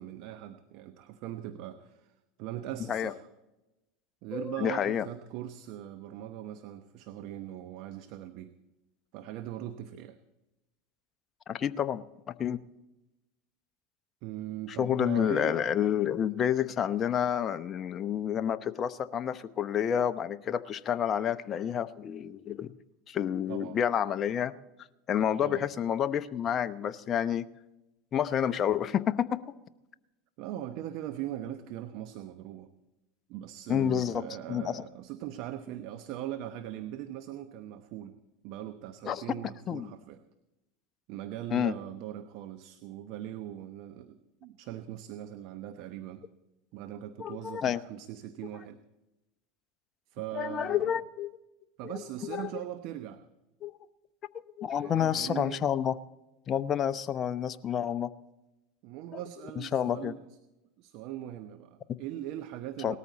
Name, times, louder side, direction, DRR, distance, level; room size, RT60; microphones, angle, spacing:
voice 1, 0.0-3.3 4.2-8.5 9.1-10.2 14.2-15.6 23.5-23.8 25.4-25.7 30.4-32.7 33.3-38.1 38.4-40.2 41.1-46.3 46.7-48.8 50.1-51.0 51.8-53.2 54.8-55.6 58.8-60.4 60.8-63.0, right 12 dB, 60° right, 9 dB, 0.9 m, -40 dB
voice 2, 4.3-5.0 11.5-12.0 12.4-12.6 14.8-22.7 23.1-24.5 25.1-27.5 28.1-29.4 33.7-34.8 39.0-39.2 39.7-39.9 41.5-41.7 47.2-47.8 50.3-51.3 52.3-52.5 53.6-53.7 54.6-55.9 56.5-58.1 59.6-60.1 62.8-63.0, left 9 dB, 35° left, 12 dB, 0.7 m, -29 dB
19.0 x 13.5 x 4.2 m, 0.99 s
hypercardioid pair, 95°, 0 cm